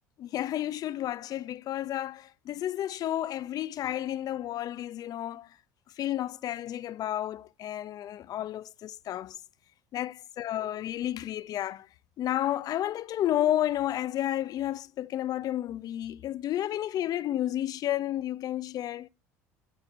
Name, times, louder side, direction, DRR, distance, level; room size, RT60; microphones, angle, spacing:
voice 1, 0.2-5.5 6.0-9.4 9.9-11.9 12.2-19.1, left 12 dB, 50° left, 0.8 m, -31 dB
14.0 x 5.1 x 8.4 m
hypercardioid pair, 70°, 8 cm